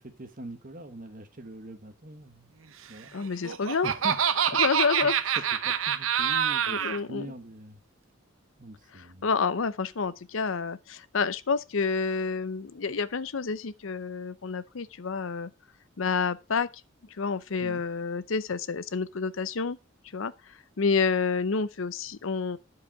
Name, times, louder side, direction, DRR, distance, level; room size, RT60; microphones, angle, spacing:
voice 1, 0.0-2.5 2.9-3.2 3.8-4.2 4.5-4.6 5.0-5.1 5.4-7.8 8.6-9.3 17.6-17.8, right 1 dB, 40° right, 1.2 m, -42 dB
voice 2, 3.1-3.9 4.5-5.1 6.7-7.3 9.2-15.5 16.0-16.7 17.2-19.8 20.1-20.3 20.8-22.6, left 5 dB, 75° left, 0.6 m, -29 dB
Laughter, 3.2-7.0, right 8 dB, 80° right, 0.8 m, -26 dB
10.5 x 5.0 x 5.7 m
head